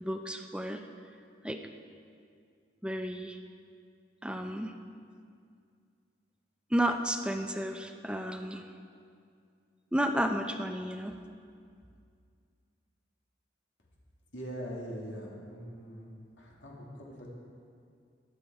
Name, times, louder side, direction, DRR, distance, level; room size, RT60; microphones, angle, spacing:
voice 1, 0.0-0.8 1.4-1.6 2.8-3.4 4.2-4.7 6.7-8.6 9.9-11.2, equal, 5° right, 6 dB, 0.6 m, -32 dB
voice 2, 14.3-16.1 16.4-17.3, equal, 85° left, -3 dB, 2.7 m, -42 dB
21.0 x 8.1 x 4.7 m, 2.3 s
head